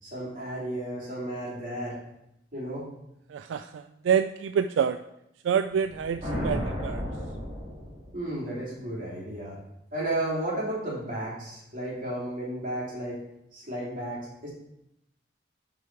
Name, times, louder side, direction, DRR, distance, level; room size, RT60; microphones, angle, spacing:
voice 1, 0.0-2.0 2.5-2.9 8.1-9.6 9.9-13.2 13.5-14.5, right 1 dB, 45° right, -5 dB, 3.0 m, -33 dB
voice 2, 3.3-5.0 5.4-7.0, right 7 dB, 85° right, 10 dB, 0.3 m, -27 dB
sound 1, 5.8-8.3, equal, 25° right, 3.2 m, -33 dB
8.1 x 4.8 x 4.6 m, 0.84 s
head